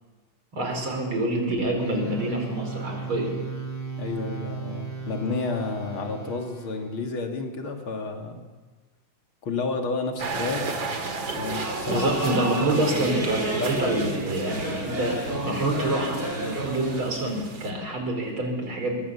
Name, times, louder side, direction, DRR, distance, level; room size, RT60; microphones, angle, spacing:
voice 1, 0.5-3.4 11.9-19.0, right 1 dB, 90° right, 2 dB, 5.6 m, -27 dB
sound 1, 1.8-7.0, right 4 dB, 20° left, 4.5 m, -36 dB
voice 2, 4.0-8.4 9.4-10.8 11.4-12.2 12.9-13.3, left 3 dB, 85° left, 3 dB, 3.2 m, -31 dB
sound 2, 10.2-17.7, right 4 dB, 70° right, 2.9 m, -34 dB
sound 3, 11.2-17.0, right 1 dB, 25° right, 4.7 m, -31 dB
24.0 x 21.5 x 7.2 m, 1.3 s
omnidirectional pair, 2.2 m